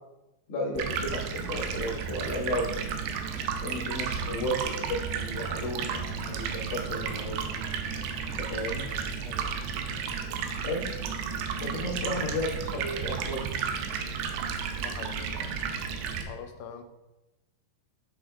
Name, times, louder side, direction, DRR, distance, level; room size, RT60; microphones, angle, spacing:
voice 1, 0.5-2.7 3.6-7.4 8.4-8.8 10.6-11.0 11.6-13.4, left 1 dB, 50° left, -6 dB, 2.1 m, -33 dB
Stream, 0.7-16.2, right 6 dB, 85° right, 2.1 m, -33 dB
voice 2, 9.2-9.7 11.9-12.0 14.8-15.6 16.3-16.8, left 7 dB, 80° left, 6 dB, 2.3 m, -44 dB
9.1 x 3.3 x 3.6 m, 1.0 s
omnidirectional pair, 4.5 m